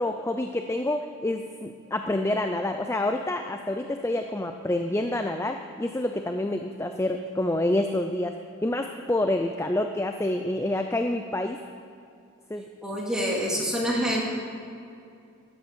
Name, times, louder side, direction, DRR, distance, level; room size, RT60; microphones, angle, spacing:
voice 1, 0.0-11.6 12.5-12.6, left 1 dB, 10° left, 6 dB, 0.4 m, -28 dB
voice 2, 12.8-14.2, equal, 5° right, -4 dB, 2.5 m, -26 dB
12.5 x 10.5 x 6.8 m, 2.5 s
head